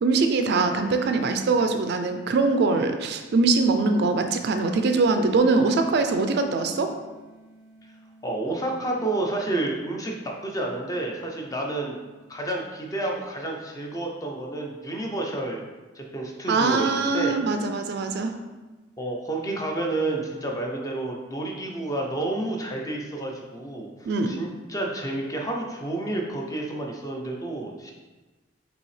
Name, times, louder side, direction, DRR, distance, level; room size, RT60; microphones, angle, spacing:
voice 1, 0.0-6.9 16.5-18.3 24.1-24.4, right 3 dB, 55° right, 7 dB, 0.3 m, -22 dB
sound 1, 4.8-15.5, right 1 dB, 50° left, 1.3 m, -55 dB
voice 2, 8.2-12.0 12.3-15.6 15.9-17.3 19.0-27.9, right 2 dB, 15° left, 0 dB, 0.5 m, -30 dB
5.3 x 2.8 x 3.2 m, 1.2 s
head